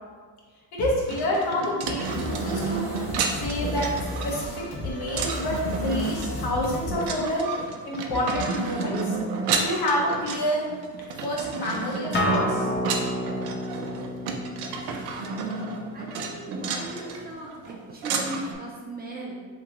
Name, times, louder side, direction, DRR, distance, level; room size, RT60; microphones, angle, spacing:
voice 1, 0.8-2.8 3.4-3.9 4.2-4.5 4.8-7.4 7.8-9.0 9.6-10.6 11.2-12.6, left 1 dB, 80° left, -3 dB, 1.1 m, -28 dB
sound 1, 1.1-18.5, right 5 dB, 90° right, 0.5 m, -31 dB
sound 2, 2.0-7.8, left 2 dB, 55° left, 1.2 m, -34 dB
Acoustic guitar, 12.1-17.3, left 1 dB, 30° left, 0.5 m, -31 dB
voice 2, 15.9-19.4, right 1 dB, 25° right, -3 dB, 0.7 m, -37 dB
3.0 x 2.8 x 3.8 m, 1.5 s
cardioid pair, 125°, 37 cm